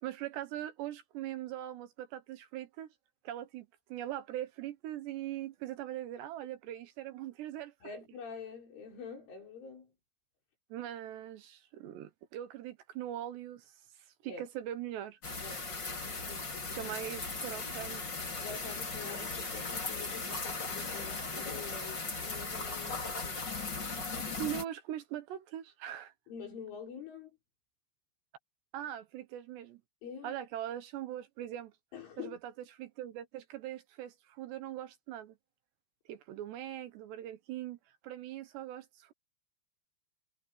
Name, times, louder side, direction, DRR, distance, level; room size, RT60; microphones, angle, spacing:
voice 1, 0.0-2.9 3.2-7.7 10.7-15.2 16.8-18.0 24.4-26.1 28.7-29.8 30.2-31.7 32.2-32.5 32.8-35.4 36.1-37.8 38.0-39.1, right 12 dB, 70° right, 3.1 m, -41 dB
voice 2, 7.8-9.9 14.3-14.5 15.4-17.0 18.4-23.5 26.3-27.3 30.0-30.4 31.9-32.4, left 6 dB, 80° left, 8.6 m, -47 dB
sound 1, 15.2-24.6, left 4 dB, 25° left, 3.5 m, -38 dB
omnidirectional pair, 5.5 m